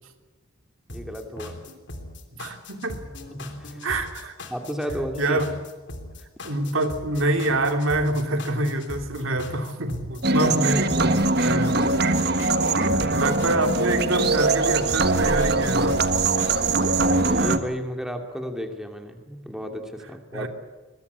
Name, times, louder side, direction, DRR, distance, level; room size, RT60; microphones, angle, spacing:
sound 1, 0.9-16.9, left 2 dB, 55° left, 3.3 m, -39 dB
voice 1, 0.9-1.7 3.3-3.9 4.5-5.4 10.4-10.8 11.8-11.9 12.6-13.3 17.0-20.5, equal, ahead, 4 dB, 2.7 m, -33 dB
voice 2, 2.3-3.0 3.8-4.4 5.2-5.5 6.4-11.8 12.0-12.3 13.1-16.1 20.3-20.5, right 1 dB, 75° right, 6 dB, 2.9 m, -26 dB
sound 2, 10.2-17.6, right 3 dB, 50° right, 1.5 m, -22 dB
23.0 x 22.0 x 8.3 m, 1.3 s
head